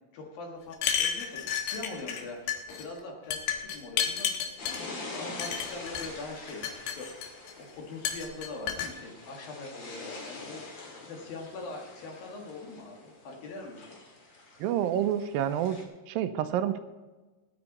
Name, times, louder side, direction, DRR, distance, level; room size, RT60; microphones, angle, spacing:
voice 1, 0.1-14.0, left 3 dB, 65° left, 0 dB, 3.5 m, -43 dB
sound 1, 0.7-2.2 2.5-2.8 3.3-4.8 5.4-6.1 6.5-7.5 8.0-8.9, left 8 dB, 85° left, 3.4 m, -31 dB
sound 2, 4.6-15.8, left 2 dB, 35° left, 2.2 m, -45 dB
voice 2, 14.6-15.8 16.1-16.8, right 10 dB, 80° right, 10 dB, 2.1 m, -28 dB
18.5 x 9.8 x 4.2 m, 1.2 s
omnidirectional pair, 4.5 m